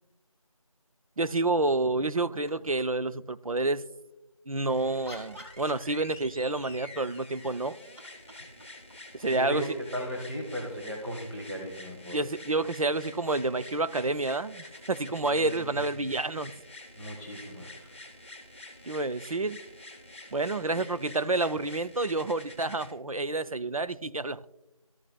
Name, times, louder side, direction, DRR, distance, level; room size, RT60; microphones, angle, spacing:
voice 1, 1.2-3.9 4.5-7.8 9.1-9.7 12.1-16.5 18.9-19.6 20.3-24.5, right 2 dB, 70° right, 0.5 m, -29 dB
sound 1, 2.1-3.1 4.5-6.4 7.4-10.0 12.1-12.2, equal, 25° right, 1.7 m, -51 dB
sound 2, 4.7-22.9 23.9-24.0, left 2 dB, 20° left, 1.0 m, -48 dB
voice 2, 9.3-12.3 15.3-15.7 16.0-16.1 17.0-17.9 20.7-20.9, equal, 45° right, 1.5 m, -37 dB
13.5 x 5.9 x 2.3 m
figure-of-eight pair, 175°, 18 cm